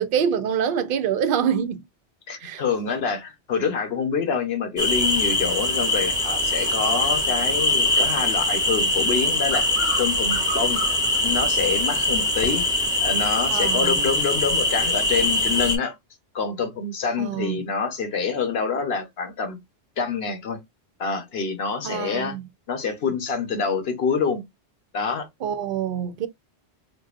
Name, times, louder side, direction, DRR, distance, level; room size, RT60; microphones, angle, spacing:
voice 1, 0.0-1.8 2.4-2.6 13.5-14.0 17.2-17.6 21.8-22.5 25.4-26.3, right 8 dB, 60° right, 0.7 m, -25 dB
voice 2, 2.3-9.7 10.0-10.8 11.2-12.6 13.0-16.0 16.3-19.6 20.0-20.6 21.0-22.3 22.7-24.4 24.9-25.3, left 5 dB, 60° left, 1.2 m, -26 dB
sound 1, 4.8-15.8, left 2 dB, 5° right, 0.9 m, -22 dB
4.3 x 2.6 x 2.5 m
omnidirectional pair, 1.2 m